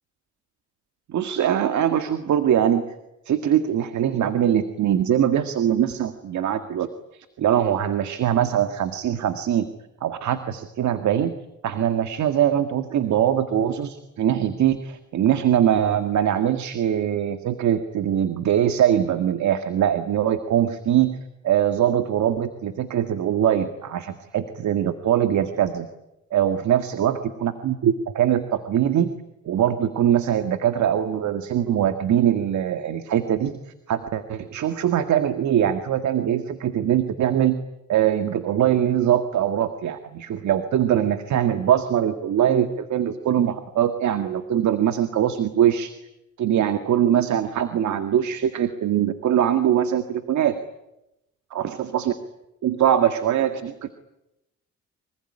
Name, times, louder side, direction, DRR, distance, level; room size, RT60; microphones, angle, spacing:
voice 1, 1.1-2.9 3.3-6.9 7.4-9.7 10.0-11.4 11.6-21.2 21.4-25.9 26.3-29.1 29.5-33.5 33.9-37.6 37.9-45.9 46.4-50.6 51.5-52.1 52.6-53.9, right 10 dB, 70° right, 9 dB, 2.0 m, -22 dB
25.5 x 23.5 x 9.9 m, 0.89 s
cardioid pair, 90°, 30 cm